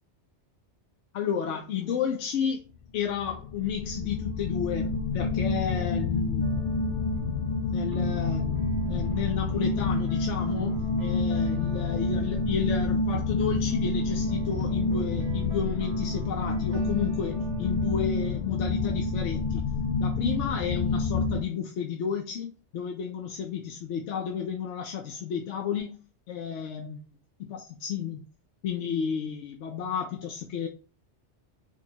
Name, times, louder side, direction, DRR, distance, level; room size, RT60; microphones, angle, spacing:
voice 1, 1.1-2.6 2.9-6.7 7.7-19.6 20.0-26.0 26.3-27.0 27.4-28.2 28.6-30.7, left 8 dB, 85° left, 0.9 m, -32 dB
sound 1, 3.2-21.4, left 3 dB, 55° left, 0.6 m, -28 dB
sound 2, 6.4-18.6, right 4 dB, 75° right, 1.1 m, -45 dB
4.8 x 2.3 x 2.8 m
omnidirectional pair, 1.2 m